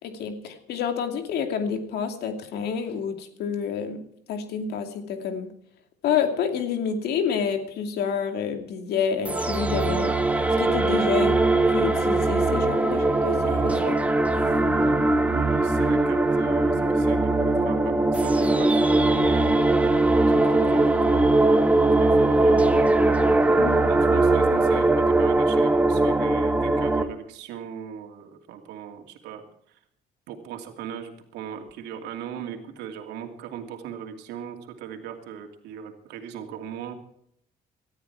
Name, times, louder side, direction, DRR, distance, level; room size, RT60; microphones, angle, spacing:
voice 1, 0.0-5.5 6.0-10.1 10.6-11.4 11.7-13.9 23.6-23.8, left 7 dB, 75° left, 6 dB, 2.6 m, -28 dB
sound 1, 9.2-27.0, right 2 dB, 10° right, 1.6 m, -21 dB
voice 2, 13.5-14.0 14.4-19.6 20.2-21.3 22.0-23.2 23.4-23.6 23.9-29.4 29.7-29.8 30.3-36.9, right 8 dB, 85° right, 4 dB, 2.7 m, -38 dB
19.0 x 13.0 x 4.7 m, 0.71 s
cardioid pair, 110°, 17 cm